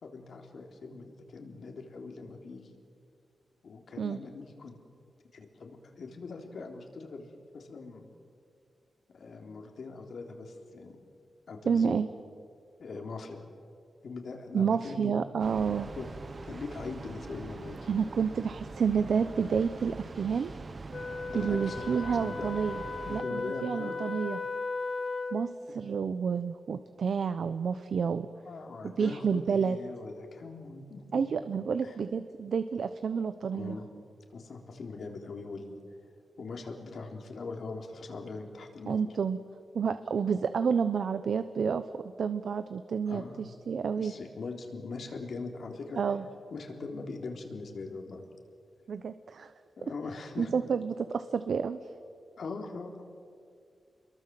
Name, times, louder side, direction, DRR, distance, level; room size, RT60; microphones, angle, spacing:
voice 1, 0.0-2.8 3.6-4.8 5.3-8.1 9.1-11.0 11.5-12.0 12.8-13.4 14.0-15.2 15.9-16.1 16.4-17.8 21.3-22.5 23.1-24.0 25.7-25.9 28.5-31.2 31.8-32.0 33.5-33.9 34.3-35.8 36.4-39.1 43.1-43.4 44.0-46.0 46.5-48.2 49.8-50.5 52.4-53.1, left 4 dB, 65° left, 3 dB, 3.6 m, -41 dB
voice 2, 11.6-12.1 14.5-15.9 17.9-20.5 21.3-22.8 23.1-24.4 25.3-28.3 28.8-29.8 31.1-33.8 38.9-39.4 39.7-44.1 46.0-46.2 48.9-49.5 50.4-51.8, right 6 dB, 65° right, 11 dB, 0.9 m, -30 dB
Train, 15.4-23.2, right 3 dB, 35° right, 1.1 m, -43 dB
Wind instrument woodwind instrument, 20.9-25.5, left 3 dB, 35° left, 1.5 m, -36 dB
29.0 x 22.5 x 7.7 m, 2.3 s
wide cardioid pair, 135°, 0 cm